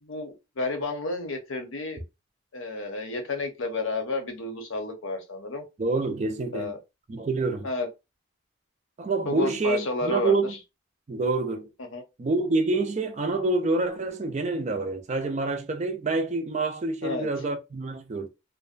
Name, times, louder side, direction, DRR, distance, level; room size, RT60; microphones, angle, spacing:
voice 1, 0.0-2.0 2.5-5.6 6.5-6.8 7.6-7.9 9.3-10.6 11.9-12.0 17.0-17.3, left 2 dB, 75° left, 0.7 m, -31 dB
voice 2, 5.8-6.7 7.1-7.7 9.0-10.5 11.1-11.7 12.2-18.3, right 3 dB, 35° right, 0.4 m, -27 dB
2.5 x 2.2 x 2.5 m
head